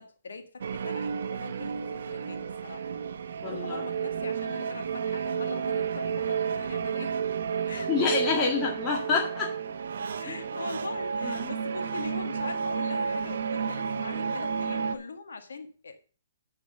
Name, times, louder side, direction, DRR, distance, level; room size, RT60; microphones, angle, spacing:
voice 1, 0.0-2.9 3.4-7.2 7.7-7.9 10.2-16.0, left 3 dB, 90° left, 7 dB, 1.8 m, -41 dB
sound 1, 0.6-15.0, right 6 dB, 70° right, 0.9 m, -31 dB
voice 2, 3.4-3.8 7.9-9.6 10.3-10.5 11.2-11.5, left 5 dB, 25° left, -2 dB, 1.9 m, -28 dB
10.0 x 4.7 x 6.8 m, 0.39 s
hypercardioid pair, 140°, 0 cm